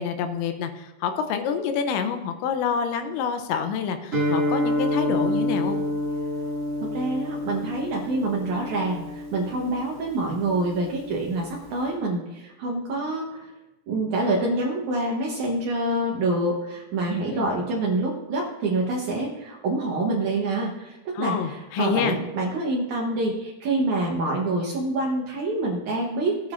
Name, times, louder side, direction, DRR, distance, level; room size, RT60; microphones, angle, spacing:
voice 1, 0.0-5.8 17.3-17.5 21.2-22.2, left 7 dB, 80° left, 8 dB, 3.0 m, -27 dB
Guitar, 4.1-11.9, left 1 dB, 25° right, 1.9 m, -28 dB
voice 2, 6.8-13.5 13.9-26.5, right 2 dB, 85° right, -2 dB, 1.7 m, -26 dB
15.5 x 9.4 x 2.5 m, 1.0 s
omnidirectional pair, 5.2 m